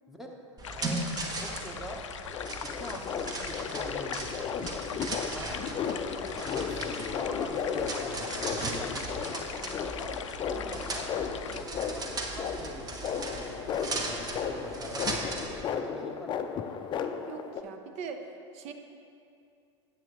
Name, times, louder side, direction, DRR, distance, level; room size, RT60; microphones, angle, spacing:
sound 1, 0.6-11.6, left 8 dB, 85° left, 0.4 m, -41 dB
voice 1, 0.6-1.0 1.4-2.0 2.7-4.8 5.3-8.9 9.2-10.1 10.5-11.1 11.4-12.0 12.3-16.4, left 1 dB, ahead, 0 dB, 1.1 m, -44 dB
sound 2, 0.6-15.6, right 2 dB, 25° right, 1.0 m, -38 dB
sound 3, 2.3-17.6, left 7 dB, 30° left, 0.5 m, -35 dB
voice 2, 17.3-18.3 18.5-18.7, right 6 dB, 45° right, 6 dB, 0.8 m, -40 dB
9.4 x 8.0 x 3.1 m, 2.5 s
hypercardioid pair, 95°, 15 cm